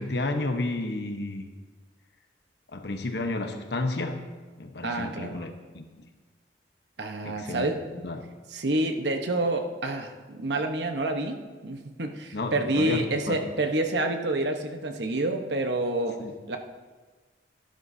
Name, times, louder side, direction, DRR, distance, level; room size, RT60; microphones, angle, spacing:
voice 1, 0.0-1.5 2.7-4.2 4.6-6.1 7.2-8.2 12.3-13.4 16.2-16.3, left 2 dB, 70° left, 5 dB, 1.0 m, -32 dB
voice 2, 4.8-5.4 7.0-7.8 8.5-16.2 16.5-16.6, right 2 dB, 80° right, 5 dB, 1.0 m, -28 dB
13.0 x 11.5 x 2.7 m, 1.4 s
head